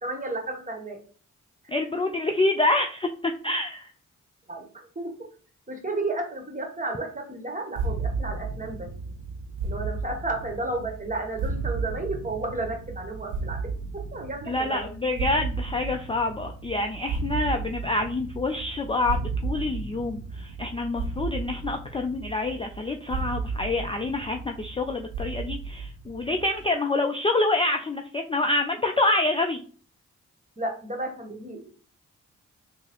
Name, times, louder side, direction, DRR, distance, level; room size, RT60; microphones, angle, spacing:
voice 1, 0.0-1.0 1.6-1.7 4.5-5.1 5.7-8.9 9.6-13.6 13.9-14.9 30.6-31.7, right 2 dB, 25° right, 3 dB, 1.0 m, -32 dB
voice 2, 1.7-3.9 14.5-29.6, left 2 dB, 20° left, 4 dB, 0.3 m, -27 dB
sound 1, 7.8-26.7, right 4 dB, 70° right, 0.5 m, -34 dB
3.7 x 2.0 x 2.9 m, 0.42 s
cardioid pair, 50°, 32 cm